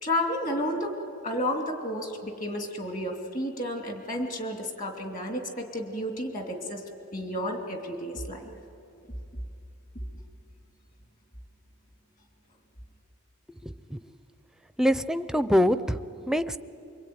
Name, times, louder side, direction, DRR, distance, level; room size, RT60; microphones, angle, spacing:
voice 1, 0.0-0.9 1.2-6.8 7.1-8.6, left 1 dB, 40° left, 4 dB, 2.8 m, -31 dB
voice 2, 13.6-14.0 14.8-16.6, equal, 5° right, 13 dB, 0.5 m, -25 dB
24.5 x 23.0 x 9.4 m, 2.7 s
head